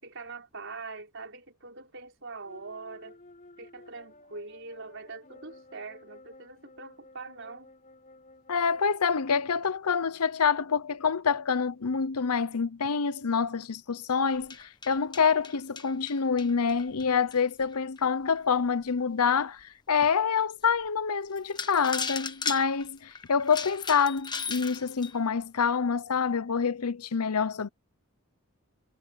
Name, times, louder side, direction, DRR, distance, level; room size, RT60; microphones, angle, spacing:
voice 1, 0.0-3.2 3.6-7.7, right 3 dB, 55° right, 5.3 m, -43 dB
sound 1, 2.4-8.9, left 2 dB, 35° left, 4.3 m, -54 dB
voice 2, 8.5-27.7, left 6 dB, 85° left, 0.8 m, -27 dB
sound 2, 14.3-17.8 18.4-18.5 19.0-19.1 19.6-19.7 20.9-21.0 21.4-25.2, left 5 dB, 20° left, 1.3 m, -36 dB
head